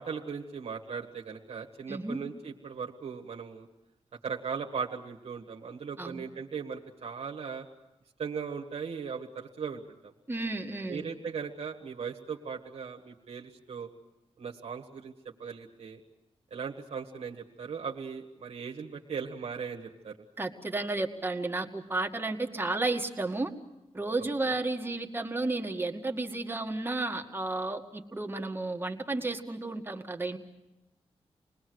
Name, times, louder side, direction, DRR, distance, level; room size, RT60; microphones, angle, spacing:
voice 1, 0.0-3.7 4.2-7.7 8.2-10.1 10.9-13.9 14.4-15.1 15.4-16.0 16.5-20.2 24.5-24.6, right 6 dB, 75° right, 0 dB, 1.7 m, -38 dB
voice 2, 1.9-2.2 6.0-6.2 10.3-11.0 20.4-23.5 23.9-30.4, right 2 dB, 20° right, 3 dB, 2.0 m, -32 dB
28.0 x 20.5 x 8.0 m, 0.97 s
wide cardioid pair, 100°, 11 cm